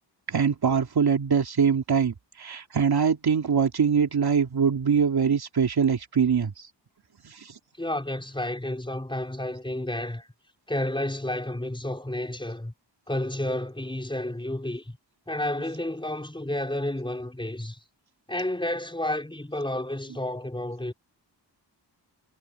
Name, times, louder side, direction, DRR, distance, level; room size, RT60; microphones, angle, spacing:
voice 1, 0.3-6.7 7.2-7.5, right 6 dB, 60° right, 2.9 m, -23 dB
voice 2, 7.8-10.3 10.7-12.7 13.1-15.0 15.3-17.8 18.3-20.9, left 1 dB, 10° left, 5.2 m, -31 dB
wide cardioid pair, 130°, 43 cm